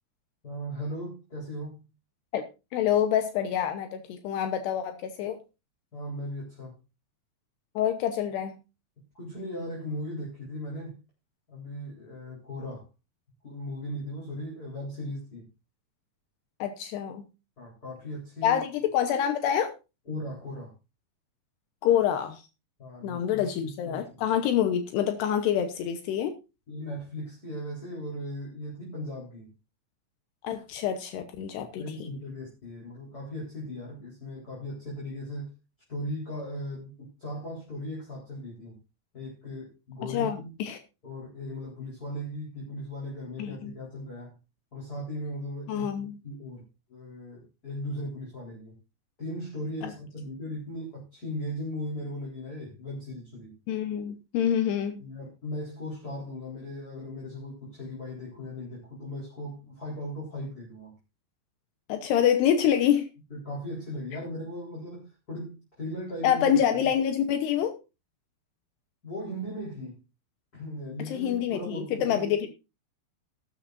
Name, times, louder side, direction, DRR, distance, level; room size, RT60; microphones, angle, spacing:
voice 1, 0.4-1.9 5.9-6.8 9.1-11.0 11.5-12.9 13.4-15.5 17.6-18.6 20.1-20.7 22.8-24.3 26.7-29.5 31.6-35.5 35.9-38.8 39.1-40.5 41.0-44.3 44.7-46.6 46.9-48.8 49.2-53.6 55.0-60.9 63.3-66.9 69.0-70.0 70.5-72.5, equal, 20° left, 4.3 m, -38 dB
voice 2, 2.7-5.4 7.8-8.5 16.6-17.3 18.4-19.7 21.8-22.5 23.0-26.3 30.4-32.1 40.1-40.8 43.4-43.7 45.7-46.2 49.8-49.9 53.7-55.0 61.9-63.1 66.2-67.8 71.1-72.5, left 9 dB, 80° left, 3.1 m, -26 dB
13.5 x 13.0 x 2.6 m
omnidirectional pair, 4.8 m